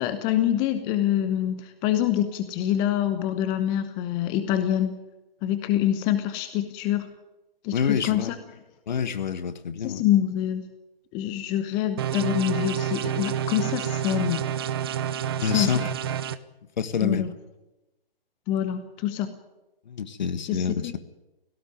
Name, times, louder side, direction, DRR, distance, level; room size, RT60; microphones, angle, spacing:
voice 1, 0.0-5.0 5.4-7.1 7.6-8.3 9.8-10.7 11.1-14.4 15.5-15.9 17.0-17.3 18.5-19.3 20.4-21.0, left 11 dB, 15° left, 10 dB, 0.9 m, -25 dB
voice 2, 7.7-8.3 8.9-10.0 15.3-15.8 16.8-17.3 19.9-21.0, left 6 dB, 50° left, 12 dB, 1.6 m, -27 dB
sound 1, 12.0-16.4, right 9 dB, 25° right, 0.6 m, -28 dB
17.5 x 17.0 x 9.5 m, 0.99 s
figure-of-eight pair, 140°, 29 cm